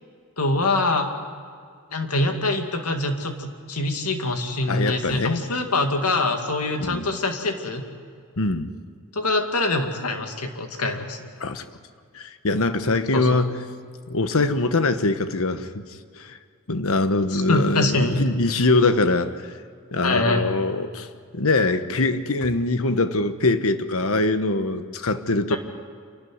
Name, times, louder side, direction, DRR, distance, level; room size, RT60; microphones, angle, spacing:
voice 1, 0.4-1.1 1.9-7.8 9.2-11.3 13.1-13.4 17.3-18.2 20.0-20.4 25.5-25.6, left 2 dB, 85° left, 5 dB, 2.3 m, -24 dB
voice 2, 4.7-5.4 6.8-7.1 8.4-8.7 11.4-11.6 12.1-13.6 14.1-15.8 16.2-16.4 16.7-19.3 19.9-21.1 21.3-25.6, left 2 dB, 65° left, 10 dB, 1.2 m, -23 dB
27.5 x 12.0 x 9.5 m, 2.2 s
head